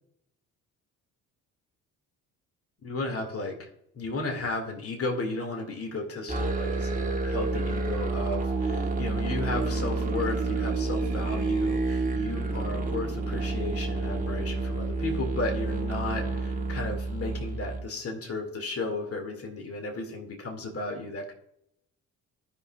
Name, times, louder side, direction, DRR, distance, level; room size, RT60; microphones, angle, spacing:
voice 1, 2.8-3.7 3.9-21.3, left 2 dB, 35° left, 3 dB, 2.1 m, -34 dB
Musical instrument, 6.3-17.9, right 3 dB, 20° right, 1.2 m, -29 dB
15.0 x 5.6 x 2.3 m, 0.77 s
hypercardioid pair, 55°, 40 cm